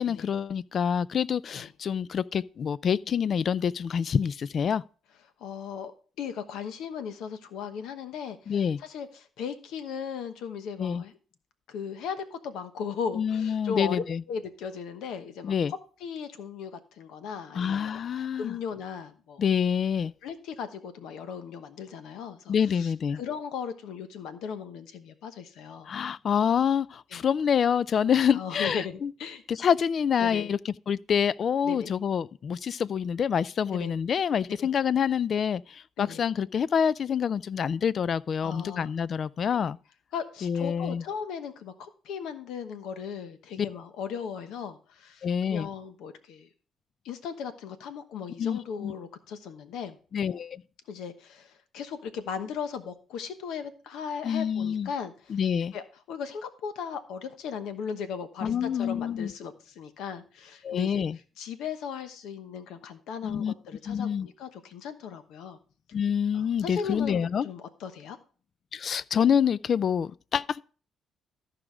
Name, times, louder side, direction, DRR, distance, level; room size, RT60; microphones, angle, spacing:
voice 1, 0.0-4.8 8.5-8.8 10.8-11.0 13.1-14.2 15.4-15.7 17.5-18.6 19.4-20.1 22.5-23.2 25.9-29.1 29.5-30.6 30.9-39.8 40.4-41.0 43.6-43.7 45.2-45.7 48.4-48.9 50.1-50.6 54.2-54.9 55.3-55.7 58.4-59.3 60.6-61.2 63.2-63.5 63.9-64.3 65.9-67.5 68.7-70.6, left 7 dB, 55° left, 0.3 m, -27 dB
voice 2, 5.4-5.9 6.2-11.2 11.7-18.0 18.4-19.4 20.2-25.9 27.1-27.2 28.3-29.4 30.2-30.5 31.6-31.9 33.7-33.9 34.6-34.7 36.0-36.2 38.4-38.9 39.5-39.7 40.1-46.5 47.0-50.0 50.9-55.4 55.7-61.0 61.4-65.6 66.3-68.2, left 7 dB, 85° left, 1.0 m, -37 dB
13.5 x 4.9 x 4.9 m
cardioid pair, 90°, 0 cm